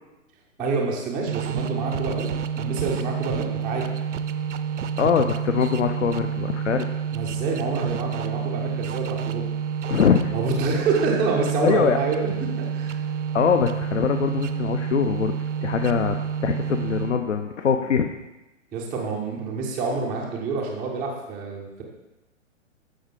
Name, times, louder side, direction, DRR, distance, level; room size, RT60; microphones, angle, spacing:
voice 1, 0.6-2.3 2.6-3.9 7.1-9.6 10.3-12.9 18.7-21.8, right 3 dB, 5° right, -8 dB, 0.4 m, -27 dB
sound 1, 1.3-17.4, right 7 dB, 65° right, 0.6 m, -29 dB
voice 2, 5.0-6.9 9.9-10.3 11.6-12.0 13.3-15.3 15.6-16.2 16.4-18.1, left 7 dB, 65° left, 6 dB, 0.7 m, -22 dB
13.0 x 5.0 x 3.7 m, 1.0 s
figure-of-eight pair, 120°, 39 cm